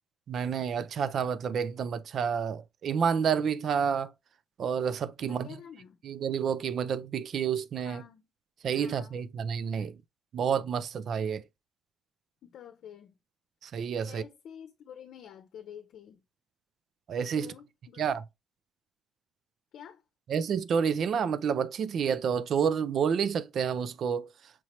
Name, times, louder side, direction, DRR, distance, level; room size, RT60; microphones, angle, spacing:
voice 1, 0.3-4.1 4.6-5.5 6.0-8.0 8.6-9.9 10.3-11.4 13.6-14.2 17.1-17.5 18.0-18.2 20.3-24.3, right 7 dB, 60° right, 0.5 m, -29 dB
voice 2, 5.2-6.0 7.8-8.2 8.8-9.2 12.4-13.1 14.0-16.2 17.3-18.1 19.7-20.0, left 9 dB, 75° left, 0.7 m, -48 dB
5.9 x 2.9 x 3.0 m
cardioid pair, 90°, 0 cm